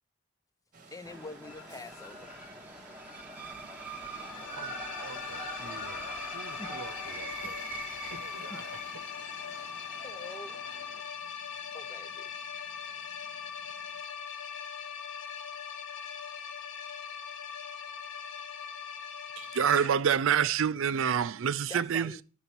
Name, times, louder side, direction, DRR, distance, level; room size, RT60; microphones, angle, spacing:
sound 1, 0.7-14.0, right 4 dB, 35° right, 1.1 m, -56 dB
voice 1, 0.8-2.3 6.6-6.8 8.5-8.6 10.0-10.6 11.7-12.3 21.7-22.2, left 2 dB, 15° left, 0.5 m, -45 dB
sound 2, 1.0-11.0, right 2 dB, 10° right, 1.2 m, -43 dB
sound 3, 4.1-19.9, left 7 dB, 60° left, 1.3 m, -41 dB
voice 2, 4.5-7.6 8.1-8.9, right 3 dB, 85° right, 0.8 m, -48 dB
voice 3, 19.4-22.1, right 8 dB, 60° right, 0.4 m, -26 dB
10.5 x 4.0 x 6.0 m
head